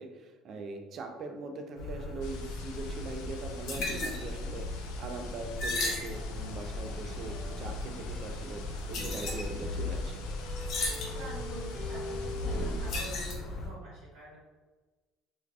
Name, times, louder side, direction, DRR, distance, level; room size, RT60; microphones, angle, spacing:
voice 1, 0.0-10.2, right 3 dB, 50° right, 5 dB, 0.4 m, -41 dB
sound 1, 1.8-13.7, left 2 dB, 60° left, 0.8 m, -36 dB
sound 2, 2.2-13.3, left 6 dB, 90° left, 0.4 m, -50 dB
sound 3, 6.6-12.9, left 2 dB, 5° left, 0.5 m, -46 dB
voice 2, 11.0-14.4, right 3 dB, 90° right, -8 dB, 0.9 m, -45 dB
2.5 x 2.3 x 3.2 m, 1.3 s
cardioid pair, 110°, 0 cm